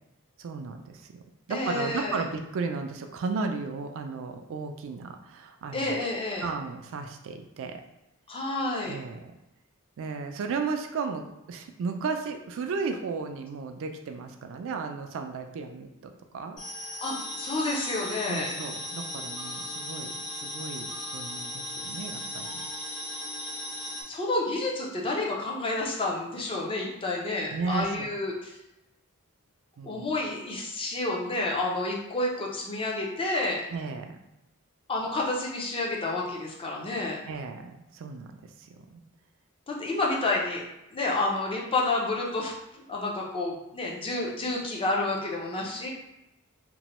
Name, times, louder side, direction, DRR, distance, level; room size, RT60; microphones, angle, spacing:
voice 1, 0.4-1.2 1.5-5.9 6.4-7.8 8.9-9.3 10.0-16.6 16.9-17.0 18.3-22.7 27.5-28.1 29.8-30.2 33.7-34.2 37.3-38.3 38.6-39.0, right 4 dB, 60° right, 6 dB, 0.3 m, -34 dB
voice 2, 1.5-2.2 5.7-6.5 8.3-9.0 17.0-18.5 24.1-28.5 29.8-33.6 34.9-37.2 39.7-40.6 40.9-42.5 42.9-45.9, left 2 dB, 25° left, -2 dB, 0.5 m, -29 dB
sound 1, 16.6-24.0, left 1 dB, 85° left, 1.0 m, -37 dB
3.0 x 2.1 x 2.9 m, 0.91 s
head